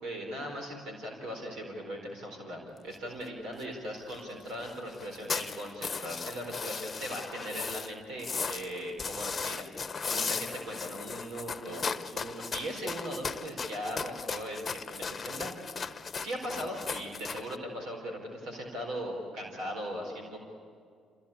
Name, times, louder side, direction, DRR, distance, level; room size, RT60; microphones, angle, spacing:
voice 1, 0.0-20.4, equal, 80° right, 1 dB, 4.3 m, -39 dB
sound 1, 2.9-3.0 3.2-3.3 3.5-3.6 3.9-4.2 4.4-7.9 8.2-17.6, left 5 dB, 40° left, 1.0 m, -37 dB
27.5 x 16.5 x 8.7 m, 2.2 s
supercardioid pair, 60°, 0 cm